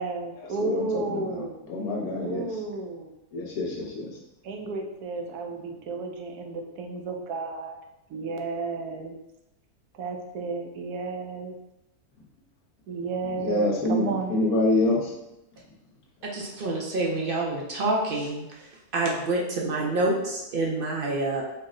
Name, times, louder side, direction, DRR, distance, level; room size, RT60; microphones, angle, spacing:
voice 1, 0.0-1.6 2.2-3.1 4.4-7.8 8.1-9.2 9.9-11.5 12.9-14.4, right 3 dB, 80° right, 4 dB, 1.1 m, -32 dB
voice 2, 0.6-2.4 3.3-4.1 13.3-15.1, left 2 dB, 75° left, -2 dB, 1.4 m, -26 dB
voice 3, 16.3-18.5 18.9-21.4, right 2 dB, 60° right, -2 dB, 0.5 m, -27 dB
4.5 x 2.1 x 3.6 m, 0.90 s
omnidirectional pair, 1.6 m